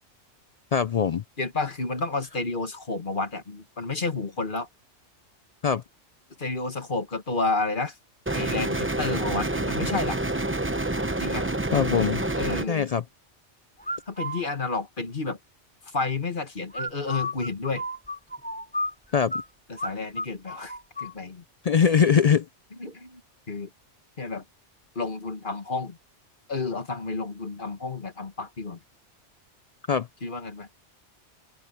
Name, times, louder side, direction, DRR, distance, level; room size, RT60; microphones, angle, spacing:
voice 1, 0.7-1.2 5.6-5.8 11.7-12.2 12.7-13.0 19.1-19.3 21.6-22.4 29.9-30.1, left 7 dB, 65° left, 0.3 m, -21 dB
voice 2, 1.4-4.7 6.4-8.0 8.3-10.2 11.2-11.5 12.4-12.9 14.1-15.4 15.9-17.8 19.7-21.4 22.8-23.2 23.5-23.7 24.2-24.4 25.0-26.0 26.5-28.8 30.2-30.7, left 3 dB, 45° left, 1.9 m, -30 dB
sound 1, 8.3-12.7, right 2 dB, 10° right, 0.8 m, -27 dB
sound 2, 13.8-14.4 16.7-19.4 19.8-19.9 20.2-21.1, left 1 dB, 5° left, 3.1 m, -32 dB
open air
omnidirectional pair, 1.2 m